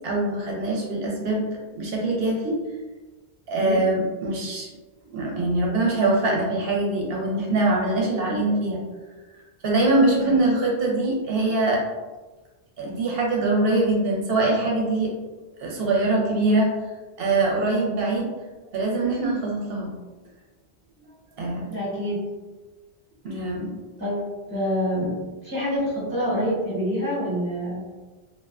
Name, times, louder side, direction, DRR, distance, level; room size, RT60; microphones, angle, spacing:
voice 1, 0.0-1.5 1.7-2.6 3.5-4.7 5.1-8.8 9.6-11.8 12.8-15.1 15.6-16.7 17.2-18.3 18.7-19.9 21.4-21.7 23.2-23.7, right 2 dB, 70° right, -2 dB, 0.8 m, -23 dB
voice 2, 21.7-22.2 24.0-25.1 25.4-27.8, equal, 20° right, -8 dB, 1.0 m, -26 dB
2.4 x 2.2 x 2.3 m, 1.2 s
omnidirectional pair, 1.1 m